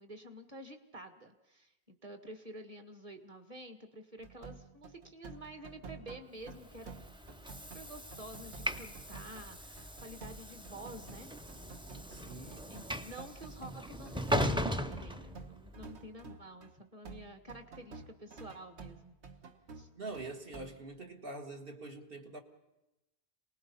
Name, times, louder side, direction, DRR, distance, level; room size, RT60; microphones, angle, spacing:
voice 1, 0.0-7.0 7.4-11.4 11.8-19.2 19.7-19.9, right 1 dB, 35° right, 7 dB, 1.6 m, -50 dB
sound 1, 4.2-16.8 17.0-20.8, right 4 dB, 85° right, 1.5 m, -51 dB
Train / Sliding door, 6.6-15.9, equal, 5° right, 0.5 m, -38 dB
voice 2, 12.1-12.6 19.9-22.4, right 2 dB, 60° right, 4 dB, 1.8 m, -44 dB
27.5 x 19.5 x 5.5 m, 0.95 s
omnidirectional pair, 1.1 m